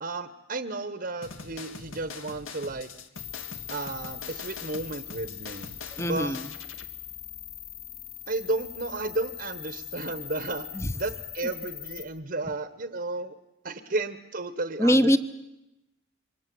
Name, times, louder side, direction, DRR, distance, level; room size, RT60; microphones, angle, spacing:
voice 1, 0.0-2.9 3.7-5.7 6.1-6.4 8.3-10.7 10.9-13.3 13.6-15.2, right 2 dB, 45° right, 10 dB, 1.1 m, -33 dB
sound 1, 1.2-6.9, left 4 dB, 80° left, 1.9 m, -43 dB
sound 2, 3.2-12.0, left 11 dB, 45° left, 4.6 m, -41 dB
voice 2, 5.9-6.5 10.7-10.9 14.8-15.2, equal, 15° left, 12 dB, 0.9 m, -22 dB
27.5 x 24.0 x 7.8 m, 0.93 s
head